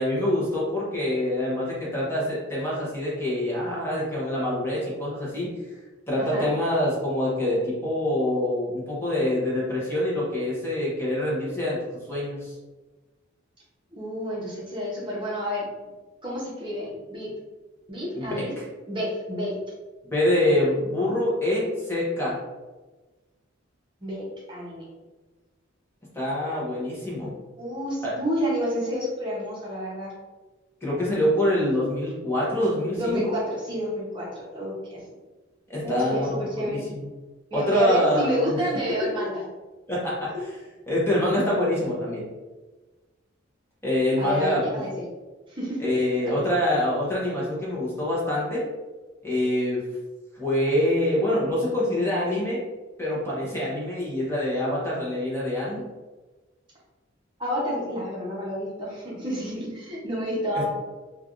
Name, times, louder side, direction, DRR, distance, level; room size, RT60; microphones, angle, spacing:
voice 1, 0.0-5.5 6.1-11.8 12.1-12.5 18.1-18.6 20.0-22.4 26.1-27.3 28.0-28.1 30.8-33.3 35.7-37.1 37.5-38.6 39.9-40.5 40.9-42.2 43.8-44.8 45.8-48.6 49.2-49.8 50.3-52.6 53.0-55.8, left 1 dB, 10° left, -6 dB, 0.7 m, -25 dB
voice 2, 6.2-6.5 13.9-15.7 16.2-17.3 17.9-18.5 18.9-19.6 24.0-24.8 27.6-30.1 32.9-35.0 35.8-36.8 37.5-39.4 44.2-45.0 45.5-45.9 46.2-46.4 57.4-60.7, equal, 25° right, -6 dB, 0.8 m, -29 dB
3.3 x 2.3 x 2.4 m, 1.2 s
head